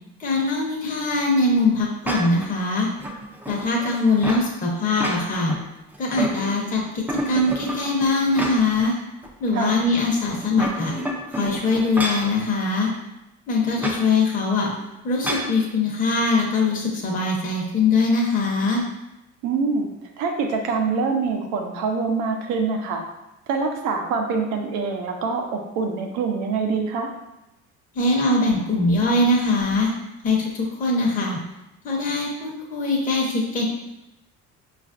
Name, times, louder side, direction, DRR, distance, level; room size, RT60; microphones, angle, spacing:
voice 1, 0.2-2.9 3.5-5.5 6.0-8.9 9.4-10.9 11.3-12.9 13.5-14.7 15.0-18.8 27.9-29.9 30.2-31.4 31.8-33.6, left 3 dB, 25° left, -2 dB, 0.8 m, -22 dB
sound 1, 2.0-2.5 3.0-4.5 4.9-5.6 5.9-6.7 7.1-8.8 9.2-9.3 10.3-12.3 13.8-14.0 15.2-15.5, right 1 dB, 5° right, 0.4 m, -29 dB
voice 2, 9.5-9.8 19.4-19.9 20.2-23.0 23.5-27.1, right 4 dB, 80° right, 3 dB, 0.7 m, -25 dB
4.9 x 2.5 x 2.4 m, 0.92 s
cardioid pair, 125°, 30 cm